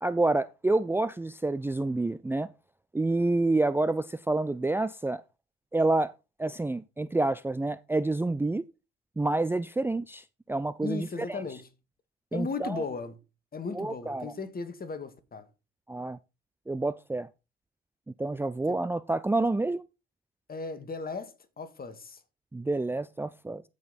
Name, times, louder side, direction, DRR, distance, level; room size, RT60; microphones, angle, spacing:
voice 1, 0.0-2.5 2.9-5.2 5.7-6.1 6.4-8.6 9.2-11.4 12.3-12.8 13.7-14.3 15.9-16.2 16.7-17.3 18.2-19.8 22.5-23.6, right 2 dB, 10° right, 0.5 m, -28 dB
voice 2, 10.8-11.7 12.3-13.2 13.5-15.5 18.7-18.8 20.5-22.2, left 4 dB, 30° left, 1.9 m, -36 dB
14.5 x 5.4 x 4.2 m
figure-of-eight pair, 55°, 29 cm